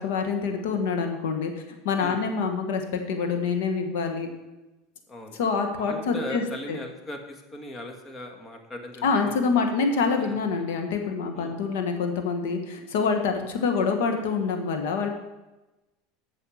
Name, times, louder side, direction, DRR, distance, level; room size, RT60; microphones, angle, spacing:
voice 1, 0.0-4.3 5.4-6.8 9.0-15.1, left 5 dB, 80° left, 5 dB, 1.3 m, -26 dB
voice 2, 5.1-5.4 5.8-9.5 10.2-10.4 11.3-11.6, left 1 dB, 25° left, 4 dB, 1.6 m, -38 dB
8.4 x 6.5 x 6.3 m, 1.1 s
supercardioid pair, 105°, 0 cm